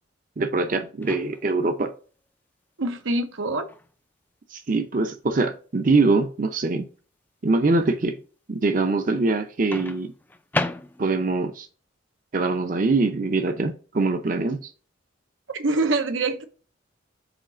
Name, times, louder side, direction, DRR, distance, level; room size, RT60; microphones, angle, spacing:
voice 1, 0.4-1.9 4.5-6.9 7.4-8.2 8.5-10.1 11.0-11.7 12.3-14.7, right 3 dB, 45° right, 0.6 m, -23 dB
Microwave oven, 1.0-1.7 3.7-3.9 9.7-11.3, left 2 dB, 10° left, 0.4 m, -32 dB
voice 2, 2.8-3.7 15.5-16.4, right 2 dB, 85° right, 0.8 m, -24 dB
5.0 x 4.1 x 4.9 m
head